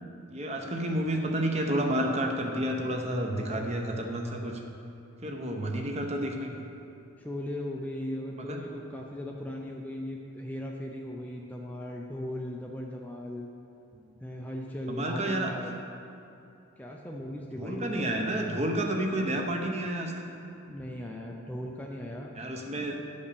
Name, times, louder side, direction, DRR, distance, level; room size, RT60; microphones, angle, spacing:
voice 1, 0.3-4.6 5.2-6.6 8.4-8.6 14.9-15.5 17.6-20.1 22.3-23.0, right 1 dB, 30° right, 2 dB, 0.8 m, -30 dB
voice 2, 5.2-5.7 7.2-13.5 14.2-15.7 16.8-18.2 20.7-22.3 22.8-22.9, left 1 dB, 5° left, -1 dB, 0.5 m, -38 dB
9.8 x 5.3 x 6.8 m, 2.6 s
head